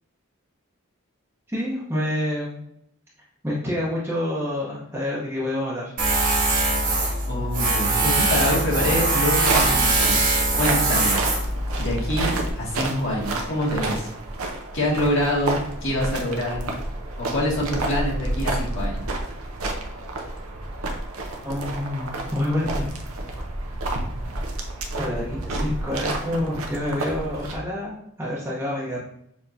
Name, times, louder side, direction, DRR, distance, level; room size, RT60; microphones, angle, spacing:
voice 1, 1.5-2.6 3.4-5.9 21.4-22.9 25.0-29.0, left 1 dB, 10° right, -8 dB, 0.8 m, -27 dB
Tools, 6.0-12.5, right 2 dB, 40° right, 1.3 m, -22 dB
voice 2, 7.3-11.2 11.8-14.1 14.7-16.7 17.2-19.0, left 1 dB, 60° left, -5 dB, 1.8 m, -26 dB
sound 1, 9.3-27.6, right 2 dB, 85° right, 0.7 m, -30 dB
6.8 x 2.9 x 2.6 m, 0.73 s
head